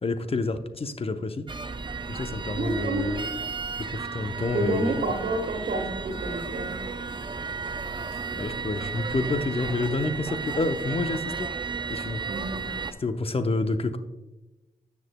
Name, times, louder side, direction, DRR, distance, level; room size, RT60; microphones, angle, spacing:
voice 1, 0.0-1.5 2.1-3.3 3.8-5.0 8.1-11.5 11.9-12.2 13.0-14.0, left 3 dB, 40° left, 9 dB, 0.7 m, -29 dB
sound 1, 1.5-12.9, right 5 dB, 30° right, 0.5 m, -34 dB
voice 2, 2.5-3.2 4.5-6.7 12.3-12.7, right 2 dB, 85° right, 4 dB, 1.3 m, -29 dB
10.0 x 7.2 x 2.2 m, 1.0 s
cardioid pair, 60°, 15 cm